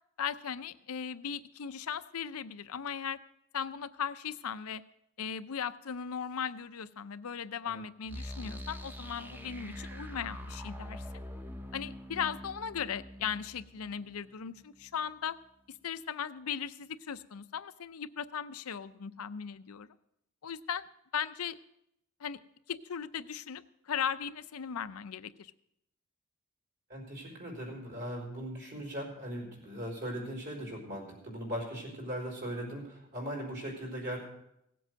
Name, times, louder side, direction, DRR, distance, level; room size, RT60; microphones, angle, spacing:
voice 1, 0.2-3.2 3.5-4.8 5.2-11.1 11.7-15.4 15.7-19.9 20.4-20.8 21.1-21.6 22.2-22.4 22.7-25.5, left 7 dB, 90° left, 14 dB, 0.6 m, -37 dB
sound 1, 8.1-14.9, left 1 dB, 10° right, 0.7 m, -44 dB
voice 2, 26.9-34.2, equal, 55° right, -1 dB, 4.4 m, -39 dB
17.0 x 7.8 x 6.3 m, 0.82 s
head